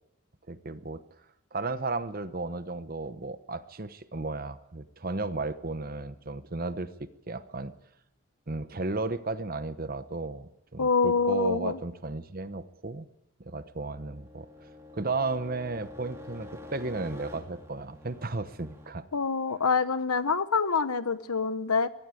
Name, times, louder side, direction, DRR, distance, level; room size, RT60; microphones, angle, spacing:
voice 1, 0.5-1.0 1.5-7.7 8.5-13.1 13.4-14.5 14.9-19.1, right 3 dB, 40° right, 12 dB, 1.0 m, -34 dB
voice 2, 10.8-11.8 19.1-21.9, left 5 dB, 85° left, 13 dB, 1.1 m, -26 dB
sound 1, 13.8-18.9, left 2 dB, 10° right, 2.4 m, -47 dB
22.5 x 14.5 x 9.2 m, 0.87 s
head